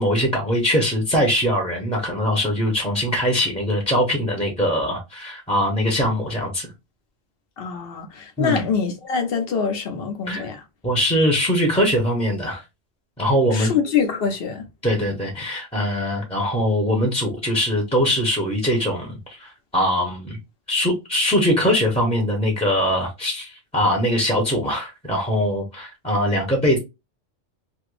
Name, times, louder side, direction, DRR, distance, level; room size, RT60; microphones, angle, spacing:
voice 1, 0.0-6.7 8.4-8.7 10.3-10.5 10.8-12.6 13.2-13.7 14.8-20.4 20.7-26.8, equal, 5° left, 0.8 m, -22 dB
voice 2, 7.6-10.6 13.5-14.6, left 6 dB, 55° left, 0.9 m, -24 dB
2.9 x 2.6 x 3.2 m
omnidirectional pair, 1.2 m